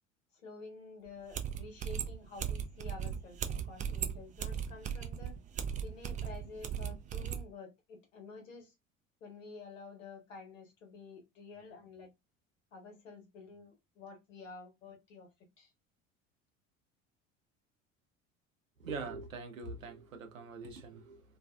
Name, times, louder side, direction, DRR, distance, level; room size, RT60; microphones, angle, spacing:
voice 1, 0.3-5.3 5.8-8.7 9.2-12.1 12.7-15.3 15.6-15.7, left 4 dB, 75° left, 1.1 m, -50 dB
sound 1, 1.1-1.2 1.3-7.4, right 8 dB, 20° right, 0.3 m, -37 dB
voice 2, 18.8-21.2, right 4 dB, 85° right, 0.7 m, -43 dB
2.5 x 2.3 x 2.2 m
figure-of-eight pair, 65°, 39 cm